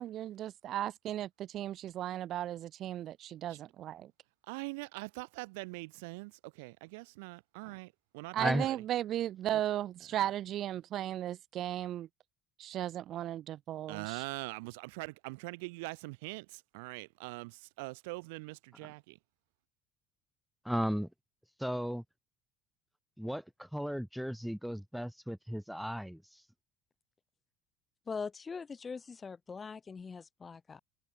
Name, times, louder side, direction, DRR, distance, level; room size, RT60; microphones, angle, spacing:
voice 1, 0.0-4.1 8.3-12.1 12.6-14.2, right 12 dB, 55° right, 0.6 m, -36 dB
voice 2, 4.5-8.8 9.5-9.6 13.9-19.2, right 27 dB, 85° right, 1.6 m, -43 dB
voice 3, 8.4-8.7 20.6-21.1 21.6-22.0 23.2-26.2, equal, ahead, 0.6 m, -35 dB
voice 4, 28.1-30.8, left 5 dB, 25° left, 1.3 m, -42 dB
supercardioid pair, 90°, 0 cm